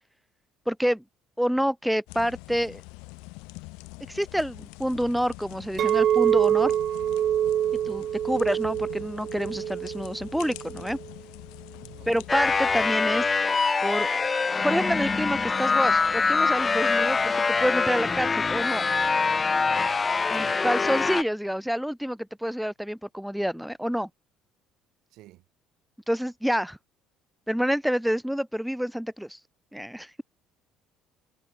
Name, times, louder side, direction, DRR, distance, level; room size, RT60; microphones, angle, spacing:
voice 1, 0.7-1.0 1.4-2.8 4.1-6.7 7.8-11.0 12.1-13.3 13.8-14.2 14.6-18.9 20.3-24.1 26.1-26.8 27.5-29.4 29.7-30.2, equal, ahead, 1.9 m, -28 dB
sound 1, 2.1-12.9, left 28 dB, 85° left, 4.0 m, -44 dB
Chink clink, 5.8-11.0, right 10 dB, 55° right, 2.7 m, -25 dB
voice 2, 7.7-8.1 11.8-12.2 20.3-21.0 25.1-25.4, right 17 dB, 75° right, 6.9 m, -50 dB
sound 2, 12.3-21.2, left 4 dB, 25° left, 1.0 m, -24 dB
supercardioid pair, 90°, 0 cm